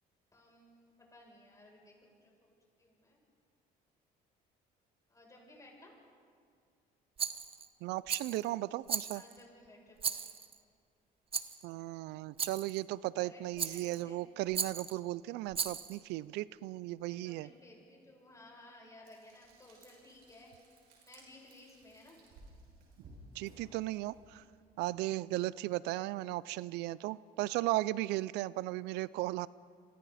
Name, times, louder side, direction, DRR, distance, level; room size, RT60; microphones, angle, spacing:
voice 1, 0.3-2.5 2.8-3.2 5.1-5.9 9.1-10.3 13.2-13.4 13.7-14.2 17.0-20.5 21.0-22.2, left 1 dB, 20° left, -2 dB, 7.4 m, -57 dB
Rattle, 7.2-7.7 8.1-8.5 8.9-9.4 10.0-10.6 11.3-11.6 12.4-12.8 13.6-14.0 14.5-15.0 15.5-16.0, right 6 dB, 35° right, 0.9 m, -37 dB
voice 2, 7.8-9.2 11.6-17.5 23.3-24.4 24.8-29.5, right 17 dB, 90° right, 19 dB, 0.4 m, -36 dB
Frying (food), 19.0-24.4, right 2 dB, 70° right, 6.5 m, -59 dB
29.0 x 23.5 x 4.2 m, 2.2 s
cardioid pair, 110°, 17 cm